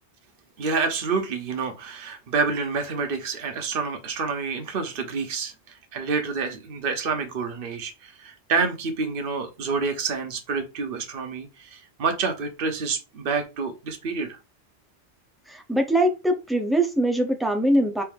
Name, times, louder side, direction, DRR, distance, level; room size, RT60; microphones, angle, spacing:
voice 1, 0.6-5.5 5.9-14.3, right 4 dB, 55° right, 1.0 m, -28 dB
voice 2, 15.5-18.0, right 1 dB, ahead, 0.6 m, -22 dB
4.5 x 2.6 x 3.5 m
omnidirectional pair, 1.2 m